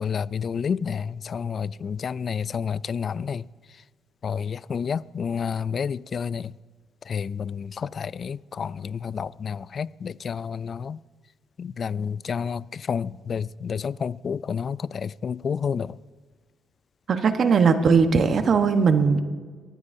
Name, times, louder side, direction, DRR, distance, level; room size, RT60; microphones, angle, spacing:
voice 1, 0.0-3.4 4.2-6.4 7.1-7.7 8.0-11.0 11.6-12.6 12.9-15.9, left 6 dB, 50° left, 0.3 m, -29 dB
voice 2, 17.1-19.2, right 5 dB, 55° right, 1.1 m, -19 dB
22.5 x 15.0 x 2.7 m
cardioid pair, 90°, 0 cm